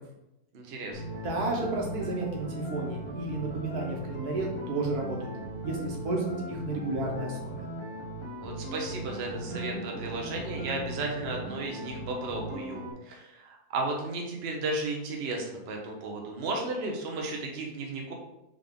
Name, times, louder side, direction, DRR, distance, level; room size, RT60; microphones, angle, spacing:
voice 1, 0.5-1.0 8.4-18.1, right 2 dB, 50° right, 1 dB, 0.9 m, -34 dB
sound 1, 0.9-12.9, right 1 dB, 25° left, 0.8 m, -38 dB
voice 2, 1.1-5.3 5.6-7.6, right 2 dB, 85° right, -1 dB, 1.5 m, -32 dB
3.7 x 3.5 x 3.6 m, 0.89 s
omnidirectional pair, 1.6 m